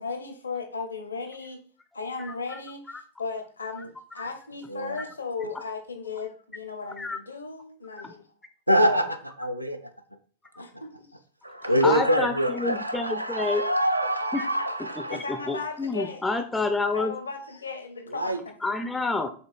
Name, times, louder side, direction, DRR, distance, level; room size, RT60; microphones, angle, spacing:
voice 1, 0.0-1.6 1.9-8.2 8.8-9.1 10.6-11.1 15.1-16.2 16.9-18.5, left 4 dB, 75° left, 0.7 m, -36 dB
voice 2, 2.2-2.6 4.2-4.3 5.0-5.1 7.0-7.2 8.0-8.1 10.5-10.6 11.6-13.7 14.3-14.5 15.1-17.2 18.6-19.3, left 3 dB, 10° left, 0.4 m, -29 dB
voice 3, 4.7-5.0 8.7-9.8 10.6-10.7 11.4-15.2 18.1-18.4, equal, 85° right, 0.5 m, -25 dB
5.3 x 3.7 x 2.5 m
figure-of-eight pair, 90°, 0 cm